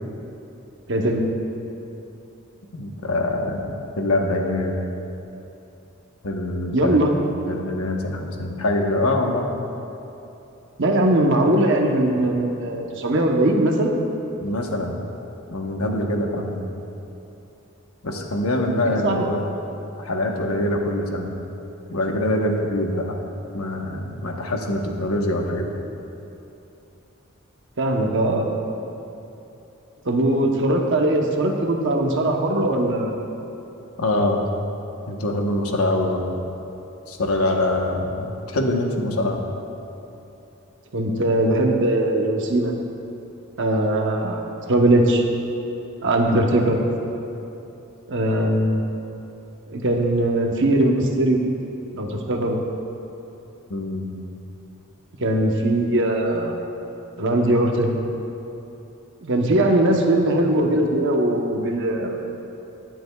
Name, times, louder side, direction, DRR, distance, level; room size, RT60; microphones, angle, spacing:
voice 1, 0.9-1.2 6.7-7.1 10.8-13.9 19.0-19.3 27.8-28.5 30.0-33.2 40.9-42.7 43.6-45.2 46.0-46.8 48.1-48.8 49.7-51.4 51.9-52.6 55.2-56.5 57.2-57.9 59.2-62.2, right 1 dB, 60° right, 1 dB, 0.9 m, -20 dB
voice 2, 2.7-4.8 6.2-7.0 7.5-9.5 14.4-15.0 15.5-16.6 18.0-19.4 20.0-21.3 21.9-23.2 23.5-25.7 34.0-34.4 35.1-36.3 37.1-39.4 53.7-54.1, left 1 dB, 90° left, 2 dB, 1.1 m, -24 dB
22.0 x 7.7 x 2.3 m, 2.9 s
head